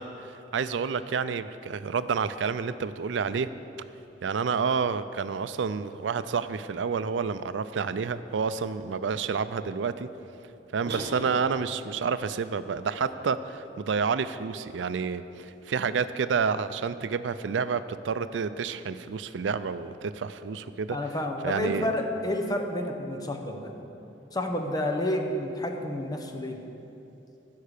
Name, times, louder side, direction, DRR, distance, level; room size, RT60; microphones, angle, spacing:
voice 1, 0.0-3.5 4.2-10.1 10.7-21.0 21.4-21.9, right 5 dB, 90° right, 13 dB, 0.4 m, -29 dB
sound 1, 10.9-11.8, right 2 dB, 65° right, 1.3 m, -37 dB
voice 2, 20.9-23.7 24.3-26.6, left 1 dB, 20° left, 4 dB, 0.9 m, -30 dB
15.0 x 5.7 x 6.6 m, 2.9 s
head